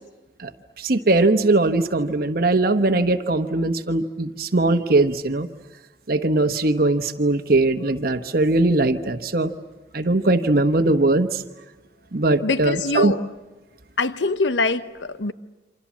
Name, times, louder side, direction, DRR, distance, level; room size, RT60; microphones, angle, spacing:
voice 1, 0.8-5.5 6.1-9.5 9.9-11.4 12.1-13.1, right 2 dB, 55° right, 8 dB, 1.1 m, -20 dB
voice 2, 12.4-13.2 14.0-15.3, left 3 dB, 90° left, 12 dB, 0.9 m, -23 dB
28.5 x 25.5 x 7.3 m, 1.1 s
head